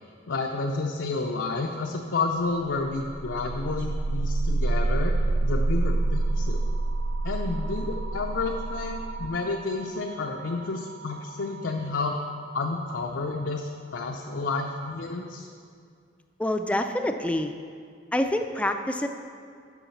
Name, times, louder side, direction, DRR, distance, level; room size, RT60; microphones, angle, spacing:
voice 1, 0.3-5.1 5.4-6.6 7.2-12.2 12.5-15.5, left 3 dB, 85° left, 1 dB, 0.5 m, -30 dB
sound 1, 2.7-12.6, right 2 dB, 85° right, 0.4 m, -28 dB
voice 2, 16.4-17.5 18.1-19.1, left 1 dB, 5° left, 6 dB, 0.3 m, -26 dB
7.2 x 5.6 x 7.0 m, 2.2 s
head